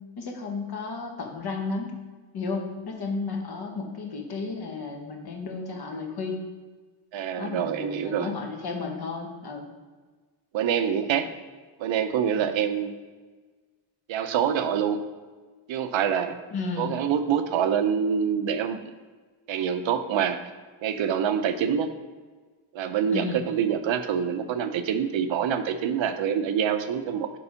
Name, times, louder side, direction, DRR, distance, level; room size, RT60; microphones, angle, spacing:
voice 1, 0.0-1.9 2.3-6.4 7.4-9.7 16.5-16.9 23.1-23.4, left 4 dB, 50° left, 2 dB, 1.5 m, -33 dB
voice 2, 7.1-8.3 10.5-11.3 11.8-13.0 14.1-15.0 15.7-16.4 16.8-18.8 19.5-20.4 20.8-21.9 22.7-27.3, right 8 dB, 70° right, 9 dB, 0.8 m, -26 dB
6.9 x 4.7 x 5.6 m, 1.4 s
wide cardioid pair, 145°, 48 cm